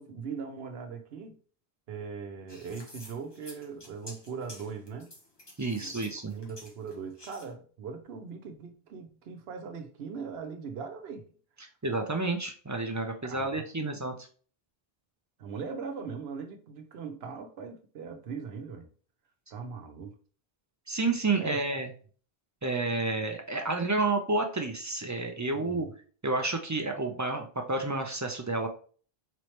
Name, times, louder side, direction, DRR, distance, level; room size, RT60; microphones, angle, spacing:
voice 1, 0.0-1.4 1.9-5.1 5.8-5.9 6.3-11.2 13.2-13.9 15.4-18.9 19.5-20.2 21.4-21.6 25.5-25.9, right 5 dB, 80° right, 1.0 m, -40 dB
sound 1, 2.5-7.5, left 1 dB, 25° left, 1.1 m, -50 dB
voice 2, 5.6-6.4 11.8-14.1 20.9-21.9 22.6-25.9 26.2-28.7, right 3 dB, 30° right, 0.3 m, -30 dB
4.0 x 3.1 x 3.0 m
omnidirectional pair, 1.0 m